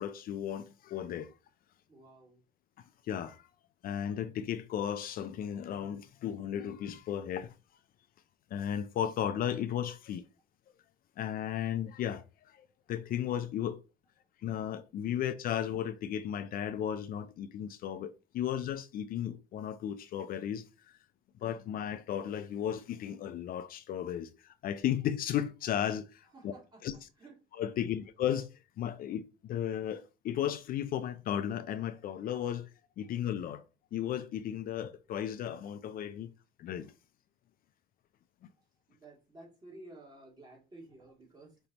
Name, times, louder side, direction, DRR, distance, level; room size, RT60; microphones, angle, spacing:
voice 1, 0.0-1.3 2.8-3.5 3.8-7.5 8.5-10.2 11.2-13.8 14.4-21.0 21.4-26.5 26.8-26.9 27.6-32.7 33.0-33.6 33.9-36.3 36.6-36.9, left 10 dB, 60° left, 0.5 m, -35 dB
voice 2, 1.9-2.4 26.3-27.5 27.9-28.0 33.0-33.1 38.6-41.6, right 2 dB, 25° right, 2.6 m, -54 dB
5.2 x 3.4 x 2.9 m
cardioid pair, 110°, 17 cm